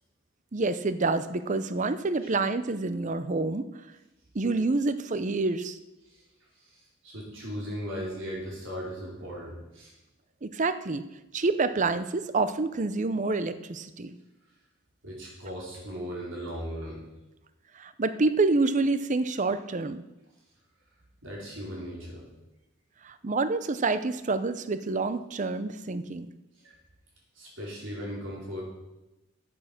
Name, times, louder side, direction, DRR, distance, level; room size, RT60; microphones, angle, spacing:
voice 1, 0.5-3.7 4.3-5.8 10.4-11.1 11.3-14.2 17.7-20.0 23.0-26.3, right 3 dB, 40° right, 12 dB, 0.6 m, -27 dB
voice 2, 7.0-9.9 15.0-17.0 21.2-22.2 26.6-26.7 27.4-28.6, equal, 65° right, -3 dB, 4.4 m, -37 dB
9.3 x 8.8 x 6.6 m, 0.98 s
head